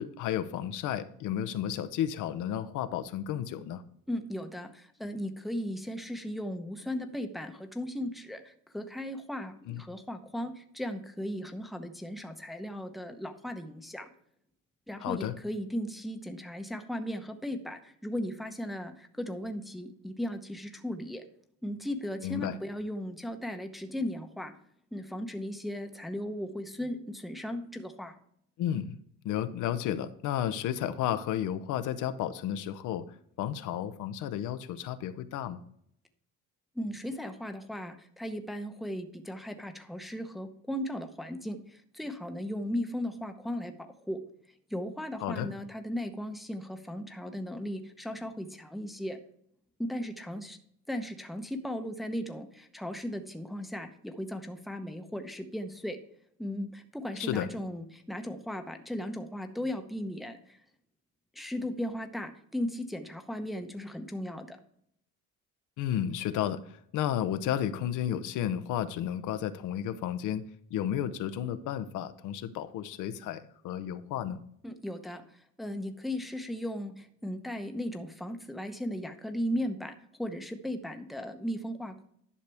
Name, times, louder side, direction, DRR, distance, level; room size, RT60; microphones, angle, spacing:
voice 1, 0.0-3.8 9.7-9.8 15.0-15.3 22.2-22.6 28.6-29.0 29.2-33.1 33.4-35.6 45.2-45.5 57.2-57.5 65.8-70.4 70.7-74.4, left 10 dB, 70° left, 12 dB, 0.7 m, -32 dB
voice 2, 4.1-14.1 14.9-21.2 21.6-24.6 24.9-28.2 36.7-44.2 44.7-49.2 49.8-50.6 50.9-56.0 56.4-60.6 61.3-64.6 74.6-82.0, equal, ahead, 6 dB, 0.7 m, -36 dB
11.0 x 6.5 x 3.4 m, 0.68 s
cardioid pair, 135°, 32 cm